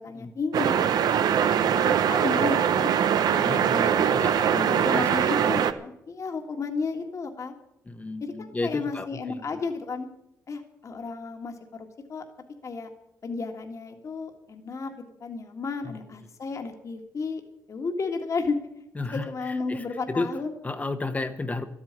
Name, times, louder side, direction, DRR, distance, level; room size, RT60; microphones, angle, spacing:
voice 1, 0.0-2.9 3.3-4.3 4.5-7.5 8.2-10.1 10.5-12.2 12.6-12.9 13.2-17.4 17.7-18.6 19.1-20.5, left 4 dB, 50° left, 4 dB, 1.8 m, -33 dB
sound 1, 0.5-5.7, right 8 dB, 80° right, 0.8 m, -22 dB
voice 2, 3.4-5.5 7.8-9.4 15.8-16.0 19.0-20.3 20.6-21.6, left 3 dB, 25° left, 8 dB, 1.0 m, -33 dB
12.5 x 8.9 x 9.5 m, 0.83 s
cardioid pair, 90°, 7 cm